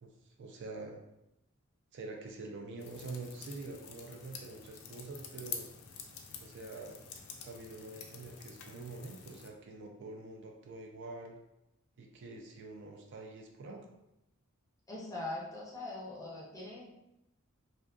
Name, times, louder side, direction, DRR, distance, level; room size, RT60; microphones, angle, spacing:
voice 1, 0.0-1.0 1.9-5.7 6.4-7.1 7.4-11.4 12.0-13.9, right 3 dB, 55° right, 1 dB, 0.3 m, -46 dB
sound 1, 2.8-9.5, left 6 dB, 65° left, 0.3 m, -48 dB
voice 2, 14.9-16.8, left 2 dB, 15° left, -5 dB, 0.5 m, -41 dB
2.5 x 2.4 x 2.2 m, 0.89 s
head